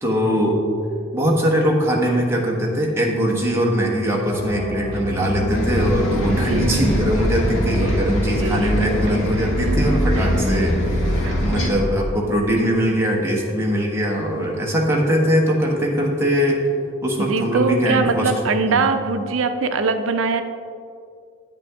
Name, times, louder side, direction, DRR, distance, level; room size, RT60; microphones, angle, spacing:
voice 1, 0.0-0.6 1.1-16.6 17.0-18.3 18.6-18.8, equal, 15° right, -2 dB, 1.3 m, -21 dB
sound 1, 4.3-9.4, equal, 25° left, 1.8 m, -28 dB
Bus, 5.5-11.7, equal, 70° left, 1.6 m, -22 dB
voice 2, 6.3-6.7 8.4-8.9 9.8-9.9 10.2-10.3 11.2-11.3 17.2-20.4, right 4 dB, 75° right, 8 dB, 0.6 m, -22 dB
9.0 x 8.7 x 3.6 m, 2.4 s
head